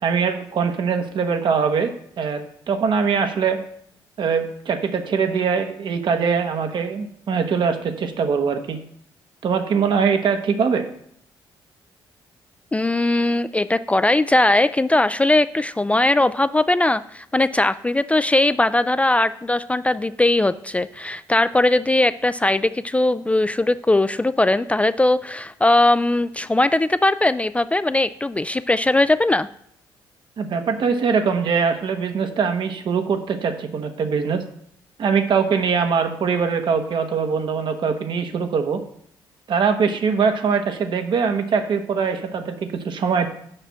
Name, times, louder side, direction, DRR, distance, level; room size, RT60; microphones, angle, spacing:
voice 1, 0.0-1.9 2.2-2.4 2.7-3.6 4.2-8.8 9.4-10.8 30.4-34.4 35.0-38.8 39.5-43.3, right 6 dB, 60° right, 7 dB, 1.1 m, -22 dB
voice 2, 12.7-29.5, left 2 dB, 15° left, 14 dB, 0.3 m, -19 dB
6.7 x 6.1 x 5.8 m, 0.68 s
cardioid pair, 70°, 9 cm